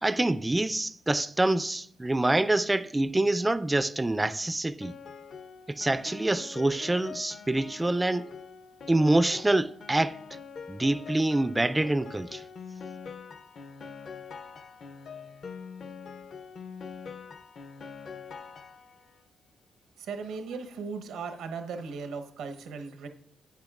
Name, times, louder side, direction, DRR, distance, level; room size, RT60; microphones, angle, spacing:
voice 1, 0.0-4.9 5.7-8.3 8.9-10.2 10.7-12.4, right 2 dB, 15° right, 0.3 m, -26 dB
Piano, 4.8-19.2, left 6 dB, 50° left, 0.5 m, -44 dB
voice 2, 20.0-23.1, right 5 dB, 80° right, 0.9 m, -37 dB
10.5 x 8.6 x 2.4 m
cardioid pair, 90°, 0 cm